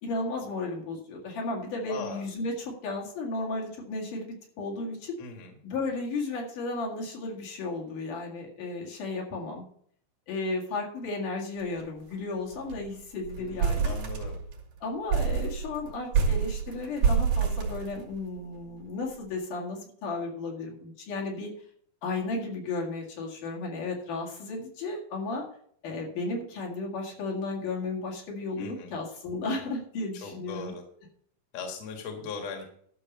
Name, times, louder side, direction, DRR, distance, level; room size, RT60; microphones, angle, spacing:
voice 1, 0.0-5.2 5.6-9.6 10.3-14.0 14.8-21.5 22.0-25.5 25.8-30.7, left 3 dB, 70° left, -2 dB, 3.6 m, -34 dB
voice 2, 1.9-2.2 5.2-5.5 13.4-14.4 28.6-28.9 30.2-30.8 31.5-32.6, left 5 dB, 55° left, 3 dB, 2.6 m, -39 dB
sound 1, 11.6-11.8 12.1-12.2 12.5-12.9 13.2-14.6 15.1-18.4, right 6 dB, 70° right, 3.3 m, -27 dB
12.5 x 6.5 x 5.4 m, 0.62 s
omnidirectional pair, 3.8 m